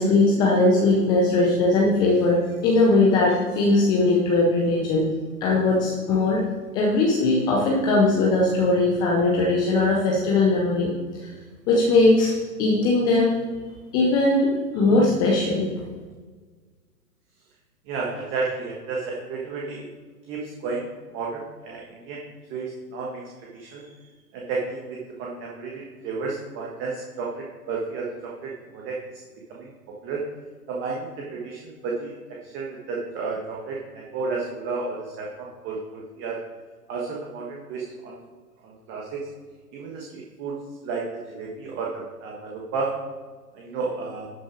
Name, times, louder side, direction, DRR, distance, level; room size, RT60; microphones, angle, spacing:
voice 1, 0.0-5.1 5.4-6.4 6.7-10.9 11.2-11.3 11.7-13.4 13.9-15.7, left 2 dB, 10° left, -2 dB, 0.5 m, -20 dB
voice 2, 17.9-19.9 20.3-22.2 22.5-23.9 24.3-29.2 29.5-30.3 30.7-36.4 36.9-38.2 38.6-39.3 39.7-40.6 40.8-42.9 43.5-44.3, right 4 dB, 25° right, -2 dB, 1.5 m, -32 dB
11.5 x 6.1 x 5.0 m, 1.5 s
hypercardioid pair, 125°, 48 cm